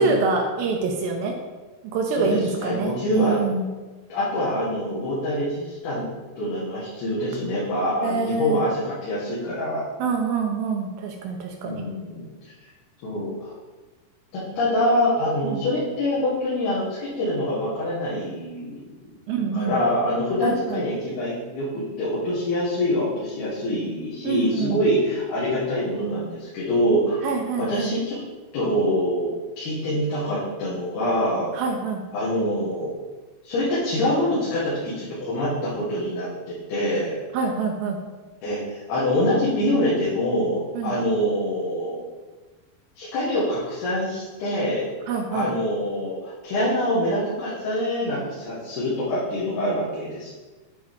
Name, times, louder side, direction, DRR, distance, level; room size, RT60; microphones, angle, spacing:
voice 1, 0.0-1.4 1.9-3.7 8.0-8.6 10.0-11.8 15.4-15.6 19.3-19.8 20.4-20.8 24.2-24.8 27.2-27.9 31.5-32.0 37.3-38.0 40.7-41.0 45.1-45.5, right 4 dB, 80° right, 2 dB, 2.3 m, -25 dB
voice 2, 2.2-3.4 4.1-6.1 6.4-9.8 11.6-12.5 13.0-13.5 14.6-19.1 19.5-27.2 27.6-28.2 28.5-29.3 29.6-31.5 32.1-32.9 33.4-37.2 38.4-42.0 43.0-44.9 45.3-50.3, left 1 dB, 75° left, -10 dB, 3.6 m, -25 dB
9.6 x 4.2 x 3.7 m, 1.2 s
omnidirectional pair, 4.7 m